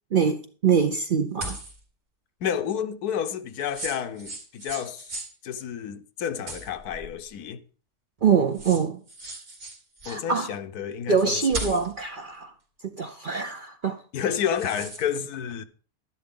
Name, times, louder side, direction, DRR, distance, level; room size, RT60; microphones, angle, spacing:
voice 1, 0.1-1.6 8.2-9.0 10.1-10.5 11.1-12.5 13.0-14.0, right 6 dB, 50° right, 0.6 m, -24 dB
sound 1, 1.4-1.8 3.6-5.3 6.5-7.2 8.2-8.3 8.5-10.2 11.5-12.0 14.3-15.0, right 1 dB, 80° right, 3.2 m, -37 dB
voice 2, 2.4-5.1 5.4-7.6 10.1-11.8 14.1-15.6, left 8 dB, 90° left, 1.4 m, -30 dB
11.5 x 10.5 x 3.8 m
omnidirectional pair, 1.6 m